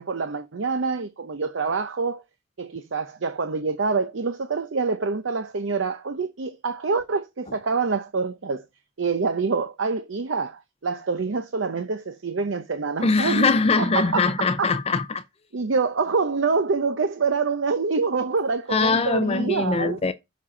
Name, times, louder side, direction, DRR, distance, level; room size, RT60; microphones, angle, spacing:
voice 1, 0.0-2.2 2.6-8.6 9.0-13.5 13.8-14.8 15.5-20.0, right 4 dB, 70° right, 0.7 m, -26 dB
voice 2, 13.0-15.2 18.7-20.1, left 4 dB, 30° left, 0.5 m, -22 dB
7.3 x 4.3 x 6.1 m
head